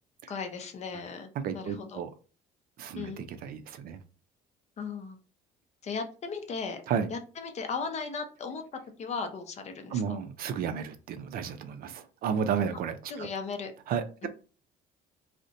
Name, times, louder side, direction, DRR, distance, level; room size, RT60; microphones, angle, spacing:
voice 1, 0.3-2.0 2.9-3.2 4.8-5.2 5.8-6.8 7.1-10.2 13.1-13.7 14.2-14.3, left 5 dB, 40° left, 6 dB, 0.5 m, -37 dB
voice 2, 1.4-2.1 2.8-4.0 6.9-7.1 9.9-13.3 13.9-14.3, right 7 dB, 60° right, 9 dB, 0.4 m, -32 dB
2.5 x 2.1 x 2.5 m, 0.36 s
cardioid pair, 110°, 17 cm